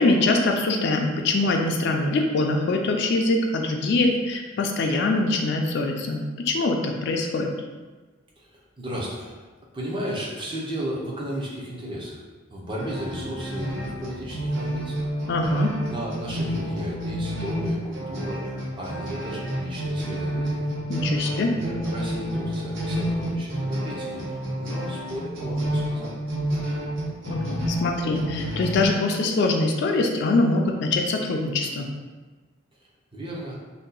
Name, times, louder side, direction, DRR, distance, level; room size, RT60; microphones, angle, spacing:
voice 1, 0.0-7.5 15.3-15.7 20.9-21.5 27.3-31.9, left 2 dB, 55° left, 2 dB, 0.3 m, -23 dB
voice 2, 8.4-9.4 9.7-12.2 12.5-15.1 15.9-20.7 21.2-26.1 33.1-33.6, equal, 25° right, -4 dB, 0.5 m, -34 dB
sound 1, 12.8-28.9, equal, 70° right, 0.8 m, -29 dB
2.7 x 2.2 x 3.8 m, 1.3 s
head